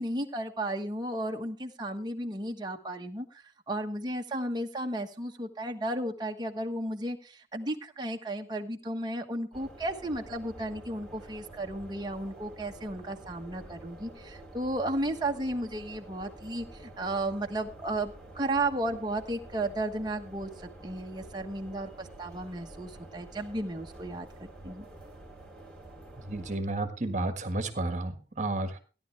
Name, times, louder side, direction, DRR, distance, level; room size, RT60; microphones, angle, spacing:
voice 1, 0.0-3.3 3.7-24.8, right 1 dB, 25° right, 2 dB, 1.2 m, -34 dB
sound 1, 9.5-26.6, right 1 dB, 5° left, 3.4 m, -49 dB
voice 2, 26.3-28.8, right 2 dB, 40° right, 8 dB, 1.6 m, -32 dB
17.0 x 11.0 x 3.4 m, 0.34 s
head